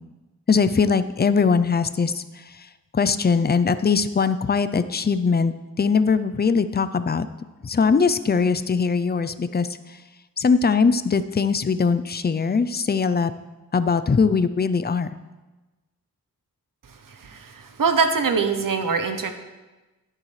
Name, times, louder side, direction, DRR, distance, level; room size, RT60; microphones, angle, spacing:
voice 1, 0.5-2.2 2.9-7.3 7.6-9.7 10.4-13.3 13.7-15.1, left 5 dB, 30° left, 13 dB, 0.5 m, -21 dB
voice 2, 17.8-19.3, right 5 dB, 65° right, 7 dB, 1.0 m, -22 dB
11.5 x 10.0 x 3.3 m, 1.1 s
wide cardioid pair, 90°, 35 cm